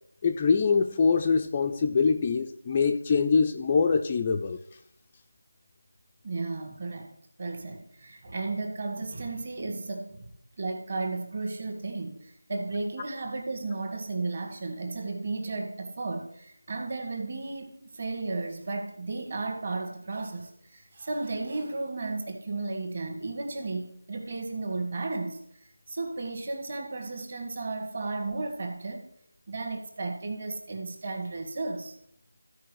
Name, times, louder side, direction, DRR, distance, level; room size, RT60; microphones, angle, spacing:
voice 1, 0.2-4.6, left 5 dB, 15° left, 4 dB, 0.4 m, -24 dB
voice 2, 6.2-10.3 10.6-29.1 29.5-32.0, right 3 dB, 35° right, 4 dB, 1.8 m, -34 dB
14.5 x 4.9 x 6.3 m, 0.72 s
figure-of-eight pair, 170°, 0 cm